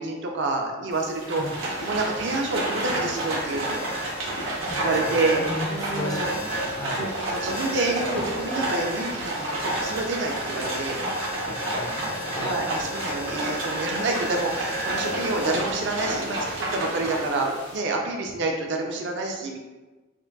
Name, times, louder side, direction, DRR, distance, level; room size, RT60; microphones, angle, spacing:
voice 1, 0.0-4.2 4.8-6.3 7.0-11.0 12.4-16.4 16.7-19.6, right 2 dB, 60° right, 2 dB, 0.4 m, -28 dB
sound 1, 0.9-17.8, equal, 60° left, 0.8 m, -37 dB
Livestock farm animals working animals, 1.2-17.6, right 1 dB, 85° right, 0.8 m, -30 dB
voice 2, 4.7-5.2 5.5-7.1 11.4-12.6, left 1 dB, 20° left, -1 dB, 0.3 m, -35 dB
3.7 x 2.2 x 2.2 m, 1.2 s
head